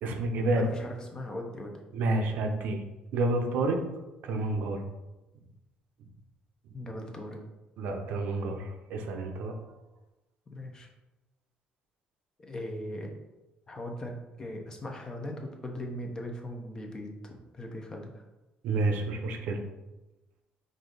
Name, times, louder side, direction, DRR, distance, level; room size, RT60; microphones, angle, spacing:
voice 1, 0.0-0.6 1.9-2.8 3.1-3.8 4.2-4.8 7.8-9.6 18.6-19.6, right 2 dB, 75° right, 4 dB, 0.6 m, -29 dB
voice 2, 0.5-1.8 6.7-7.4 10.5-10.9 12.4-13.1 13.7-18.2, left 1 dB, 25° left, 2 dB, 0.8 m, -39 dB
4.9 x 2.7 x 3.8 m, 1.0 s
cardioid pair, 125°, 3 cm